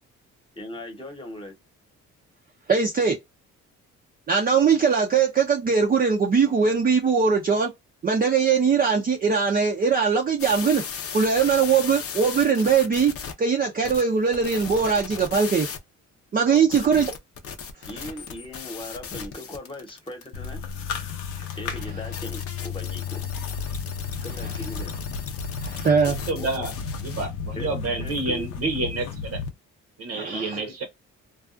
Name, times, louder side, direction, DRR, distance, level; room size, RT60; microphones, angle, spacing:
voice 1, 0.6-1.5 16.5-17.1 17.9-20.6 21.6-23.2 24.2-24.9 26.3-26.7 27.6-27.7 28.0-28.5 30.3-30.8, left 1 dB, 15° left, 1.0 m, -38 dB
voice 2, 2.7-3.2 4.3-7.7 8.0-10.8 11.1-13.1 13.4-15.7 16.3-17.1 21.4-21.5 25.6-26.2 30.1-30.6, right 6 dB, 30° right, 0.5 m, -21 dB
sound 1, 10.4-13.3 13.8-15.8 16.6-27.2, left 6 dB, 50° left, 0.6 m, -37 dB
sound 2, 20.3-29.5, left 6 dB, 85° left, 0.7 m, -33 dB
voice 3, 26.3-26.7 27.0-29.4 30.0-30.8, right 3 dB, 55° right, 0.8 m, -29 dB
2.3 x 2.3 x 2.4 m
cardioid pair, 90°, 30 cm